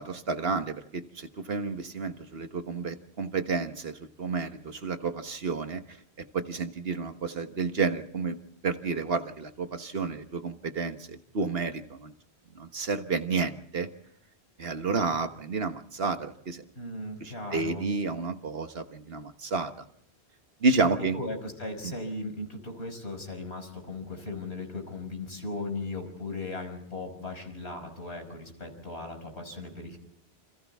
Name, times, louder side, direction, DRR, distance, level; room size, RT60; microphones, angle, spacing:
voice 1, 0.0-8.4 8.6-12.1 12.5-13.9 14.6-16.6 17.2-19.7 20.6-21.2 21.8-21.9, right 4 dB, 65° right, 7 dB, 1.6 m, -31 dB
voice 2, 16.7-17.9 21.1-30.0, left 2 dB, 85° left, 3 dB, 6.0 m, -37 dB
28.5 x 27.0 x 3.6 m, 0.75 s
omnidirectional pair, 1.1 m